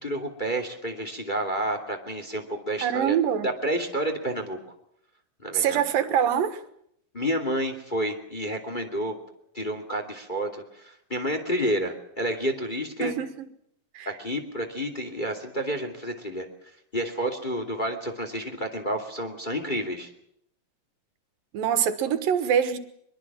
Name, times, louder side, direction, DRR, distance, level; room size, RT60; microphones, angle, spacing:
voice 1, 0.0-3.2 3.4-4.6 5.4-5.8 7.1-9.2 9.5-13.1 14.0-16.5 16.9-20.1, equal, 15° left, 2.4 m, -30 dB
voice 2, 2.8-3.5 5.5-6.6 13.0-13.3 13.9-14.1 21.5-22.8, right 8 dB, 85° right, 3.1 m, -24 dB
23.0 x 23.0 x 7.4 m
omnidirectional pair, 3.9 m